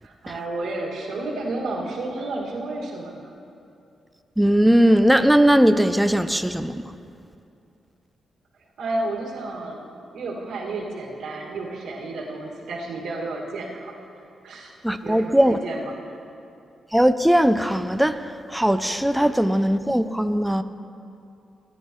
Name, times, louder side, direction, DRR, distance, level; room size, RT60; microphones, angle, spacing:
voice 1, 0.0-3.3 8.8-9.8 10.1-14.0 14.4-14.7 15.0-16.1, right 2 dB, 90° right, -2 dB, 1.9 m, -31 dB
voice 2, 4.4-6.8 14.8-15.6 16.9-18.2 18.5-20.6, equal, 5° right, 10 dB, 0.3 m, -19 dB
18.0 x 10.0 x 3.0 m, 2.6 s
cardioid pair, 110°, 0 cm